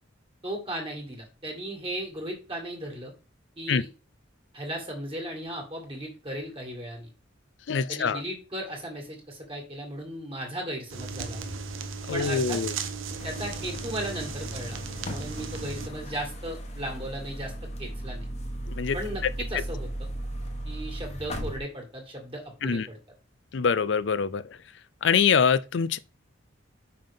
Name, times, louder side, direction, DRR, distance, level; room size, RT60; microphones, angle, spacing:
voice 1, 0.4-3.1 3.6-3.9 4.5-7.1 7.9-11.4 12.1-12.6 13.2-14.8 15.1-17.5 17.8-18.3 18.9-19.2 19.5-20.1 20.7-23.0, right 1 dB, 30° right, 1.9 m, -36 dB
voice 2, 7.7-8.2 12.1-12.7 18.7-19.0 22.6-22.9 23.5-24.4 25.0-26.0, left 6 dB, 65° left, 0.5 m, -24 dB
sound 1, 10.9-15.9, right 4 dB, 85° right, 0.8 m, -36 dB
sound 2, 13.2-21.6, right 1 dB, 35° left, 1.1 m, -37 dB
5.6 x 5.4 x 3.5 m
head